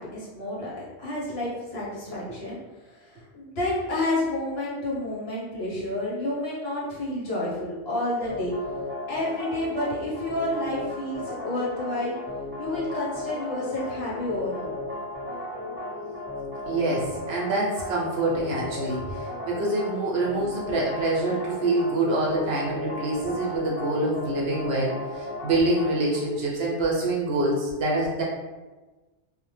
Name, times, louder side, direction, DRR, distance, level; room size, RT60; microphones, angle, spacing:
voice 1, 0.0-8.5 9.1-12.2 12.6-14.7, left 1 dB, 60° left, -7 dB, 1.2 m, -30 dB
sound 1, 8.3-26.2, left 2 dB, 25° left, 1.5 m, -35 dB
voice 2, 16.7-19.2 19.5-28.2, right 2 dB, 65° right, -3 dB, 0.8 m, -26 dB
2.7 x 2.1 x 3.1 m, 1.2 s
omnidirectional pair, 1.2 m